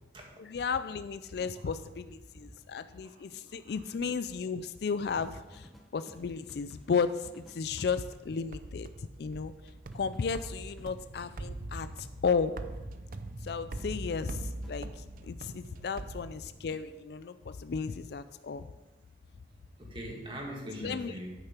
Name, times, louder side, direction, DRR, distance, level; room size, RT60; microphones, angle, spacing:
voice 1, 0.4-5.7 5.9-8.9 9.2-9.5 9.9-12.5 13.4-18.7 20.8-21.1, left 5 dB, 60° left, 12 dB, 0.4 m, -34 dB
sound 1, 5.0-8.2 9.9-11.4 13.8-14.8 16.8-17.0, equal, ahead, 0.8 m, -55 dB
sound 2, 8.1-16.9, right 2 dB, 45° right, 0.5 m, -43 dB
voice 2, 19.8-21.4, equal, 25° right, -1 dB, 2.0 m, -41 dB
9.0 x 6.6 x 6.0 m, 1.1 s
head